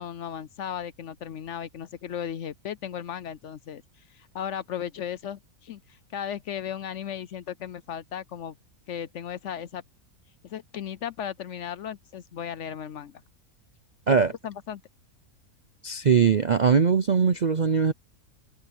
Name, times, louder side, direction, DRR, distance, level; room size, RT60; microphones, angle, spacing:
voice 1, 0.0-3.8 4.1-8.5 8.9-9.8 10.4-13.2 14.4-14.8, left 9 dB, 65° left, 0.9 m, -36 dB
voice 2, 15.8-17.9, right 6 dB, 50° right, 0.5 m, -21 dB
omnidirectional pair, 1.6 m